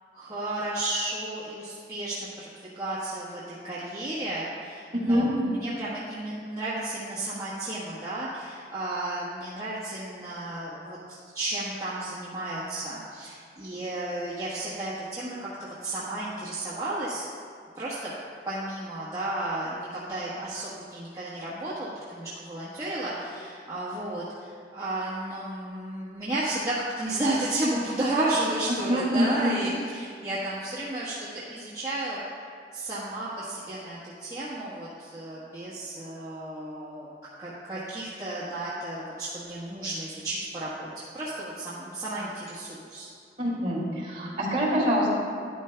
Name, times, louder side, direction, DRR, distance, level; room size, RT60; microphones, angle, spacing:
voice 1, 0.1-17.3 17.7-18.1 18.5-32.2 32.7-37.1 37.4-43.1, right 1 dB, 20° right, -11 dB, 1.3 m, -33 dB
voice 2, 28.9-29.5 43.4-45.1, equal, 35° right, -6 dB, 2.4 m, -25 dB
12.5 x 10.0 x 2.3 m, 2.2 s
head